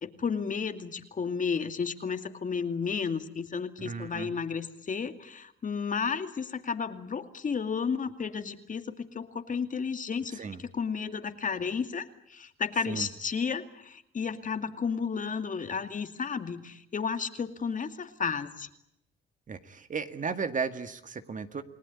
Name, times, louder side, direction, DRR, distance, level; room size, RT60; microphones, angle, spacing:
voice 1, 0.0-18.7, left 6 dB, 40° left, 8 dB, 2.4 m, -32 dB
voice 2, 3.8-4.3 10.3-10.6 12.9-13.1 19.5-21.6, right 5 dB, 40° right, 9 dB, 1.9 m, -35 dB
29.5 x 18.5 x 9.8 m, 0.78 s
cardioid pair, 90°, 20 cm